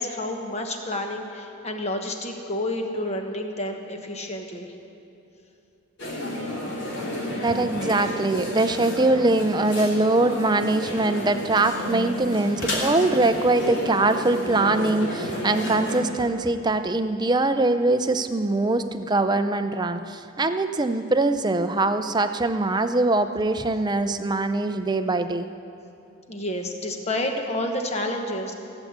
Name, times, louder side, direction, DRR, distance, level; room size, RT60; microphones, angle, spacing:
voice 1, 0.0-4.7 26.3-28.5, left 1 dB, 30° left, 3 dB, 1.2 m, -29 dB
sound 1, 6.0-16.0, left 1 dB, 55° left, 2.9 m, -31 dB
voice 2, 7.4-25.5, right 2 dB, 20° right, 9 dB, 0.5 m, -22 dB
17.0 x 8.0 x 8.1 m, 2.8 s
head